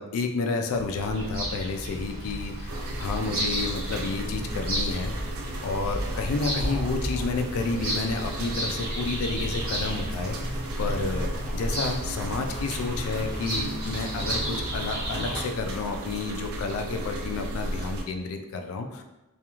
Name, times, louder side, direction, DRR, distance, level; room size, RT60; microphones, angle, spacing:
voice 1, 0.0-5.3 5.6-19.0, left 3 dB, 80° left, 5 dB, 0.3 m, -31 dB
Bird vocalization bird call bird song, 0.7-15.4, right 1 dB, 45° right, 0.7 m, -33 dB
sound 1, 2.7-18.0, right 1 dB, 80° right, 0.4 m, -34 dB
2.4 x 2.3 x 2.9 m, 1.0 s
head